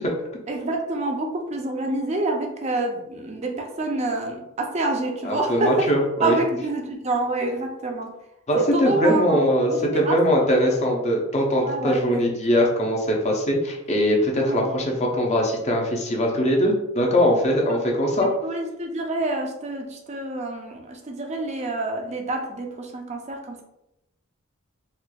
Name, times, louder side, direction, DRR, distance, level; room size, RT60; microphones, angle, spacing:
voice 1, 0.5-5.9 6.2-8.1 8.6-9.4 9.7-10.2 11.6-12.2 14.4-14.7 17.7-17.8 18.2-23.6, right 2 dB, 30° right, 2 dB, 0.5 m, -27 dB
voice 2, 5.2-6.4 8.5-18.3, equal, 30° left, 0 dB, 0.6 m, -21 dB
4.2 x 2.4 x 2.3 m, 0.91 s
head